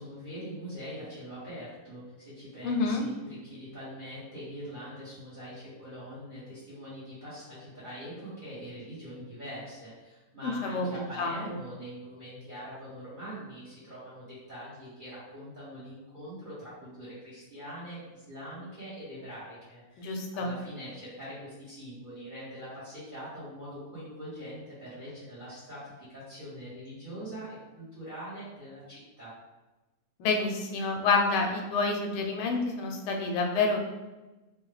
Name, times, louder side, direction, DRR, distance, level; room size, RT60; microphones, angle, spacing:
voice 1, 0.0-29.3, equal, 35° right, -11 dB, 1.0 m, -43 dB
voice 2, 2.6-3.0 10.4-11.6 20.0-20.5 30.2-33.8, left 3 dB, 80° left, 2 dB, 1.2 m, -28 dB
3.4 x 2.2 x 3.1 m, 1.1 s
omnidirectional pair, 1.8 m